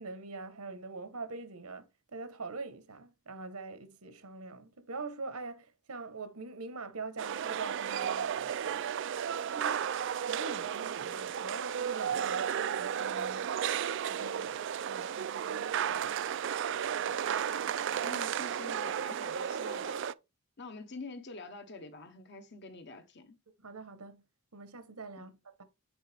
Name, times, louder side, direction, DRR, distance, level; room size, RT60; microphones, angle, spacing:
voice 1, 0.0-8.9 9.5-9.9 10.2-13.5 14.1-16.1 16.7-16.9 23.6-24.2 24.5-25.6, right 3 dB, 85° right, 1.2 m, -44 dB
sound 1, 7.2-20.1, right 8 dB, 55° right, 0.3 m, -33 dB
voice 2, 17.9-20.0 20.6-23.3 25.2-25.3, left 3 dB, 50° left, 1.1 m, -46 dB
8.7 x 4.7 x 3.4 m
head